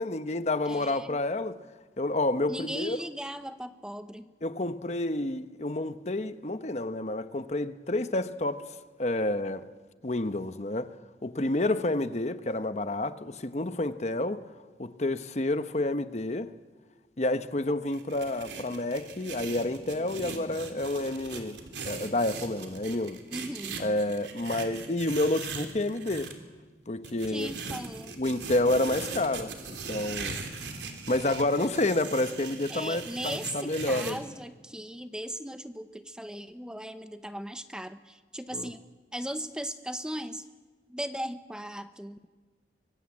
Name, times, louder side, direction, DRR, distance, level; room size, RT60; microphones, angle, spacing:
voice 1, 0.0-1.6 2.0-3.0 4.4-8.6 9.0-9.6 10.0-10.9 11.2-14.4 14.8-16.5 17.2-23.2 23.8-26.3 26.9-27.8 28.2-30.4 31.1-34.2 38.5-38.7, left 2 dB, 40° left, 0.9 m, -29 dB
voice 2, 0.7-1.2 2.5-4.3 23.3-23.8 27.3-28.1 32.7-38.8 39.1-40.4 40.9-42.3, right 1 dB, 5° right, 0.7 m, -38 dB
sound 1, 17.9-26.3 27.0-34.1, right 4 dB, 85° right, 3.3 m, -40 dB
24.0 x 23.5 x 8.5 m
head